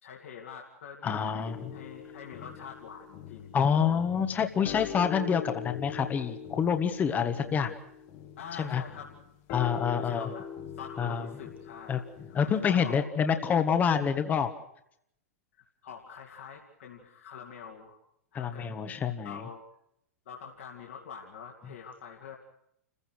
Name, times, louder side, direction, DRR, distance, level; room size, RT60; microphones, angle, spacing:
voice 1, 0.0-4.0 8.4-9.1 9.8-12.0 12.3-13.3 15.8-18.0 18.3-19.6 20.3-22.4, left 7 dB, 60° left, -1 dB, 2.9 m, -46 dB
voice 2, 1.0-1.7 3.5-7.7 8.6-8.8 9.5-10.3 11.0-11.3 11.9-12.0 12.3-14.5 18.3-19.4, left 7 dB, 20° left, 9 dB, 1.5 m, -27 dB
sound 1, 1.4-13.0, left 8 dB, 40° left, 1.8 m, -43 dB
29.5 x 15.5 x 6.3 m, 0.74 s
figure-of-eight pair, 100°, 8 cm